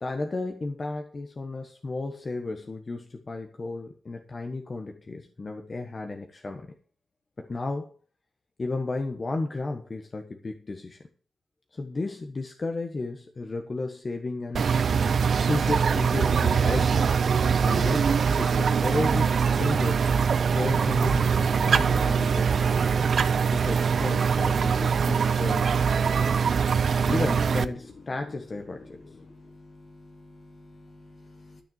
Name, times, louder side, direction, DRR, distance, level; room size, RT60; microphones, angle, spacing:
voice 1, 0.0-6.7 7.4-7.9 8.6-11.0 11.7-15.0 15.5-17.1 17.6-18.1 18.4-20.1 20.5-22.9 23.5-25.9 27.1-29.0, left 2 dB, 35° left, 3 dB, 1.3 m, -33 dB
sound 1, 14.6-27.7, right 6 dB, 60° right, 0.7 m, -23 dB
voice 2, 29.3-31.6, left 2 dB, 50° left, 2 dB, 2.5 m, -51 dB
12.5 x 7.0 x 7.1 m, 0.42 s
wide cardioid pair, 140°, 0 cm